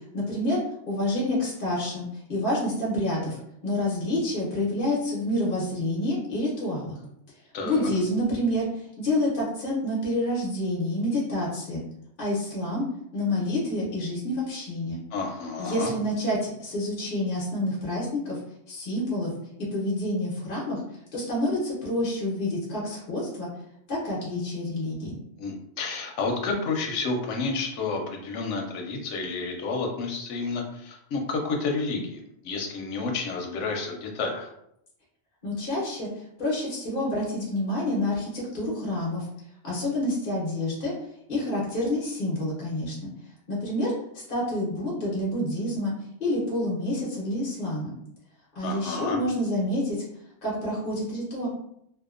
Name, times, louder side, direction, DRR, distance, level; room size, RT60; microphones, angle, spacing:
voice 1, 0.1-0.6 0.9-7.0 7.6-11.8 12.2-12.8 13.1-15.0 15.6-18.4 18.7-19.3 19.7-20.8 21.1-23.5 23.9-25.2 35.4-36.1 36.4-39.3 39.6-40.9 41.3-43.1 43.5-45.9 46.2-47.9 48.6-50.0 50.4-51.5, left 1 dB, 50° left, -5 dB, 1.0 m, -28 dB
voice 2, 7.5-7.9 15.1-15.9 25.4-34.5 48.6-49.2, left 3 dB, 90° left, 2 dB, 0.9 m, -30 dB
2.7 x 2.1 x 2.4 m, 0.75 s
omnidirectional pair, 1.2 m